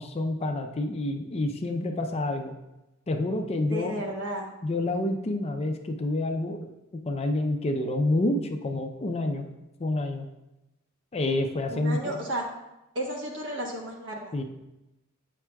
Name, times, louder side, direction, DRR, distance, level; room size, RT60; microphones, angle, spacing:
voice 1, 0.0-2.6 3.1-3.9 4.6-6.7 7.1-9.5 9.8-10.3 11.1-12.1 14.3-14.4, left 2 dB, 30° left, 5 dB, 0.4 m, -28 dB
voice 2, 3.7-4.5 11.7-12.4 12.9-14.4, right 1 dB, 60° right, 0 dB, 1.3 m, -33 dB
8.4 x 6.0 x 2.2 m, 0.95 s
head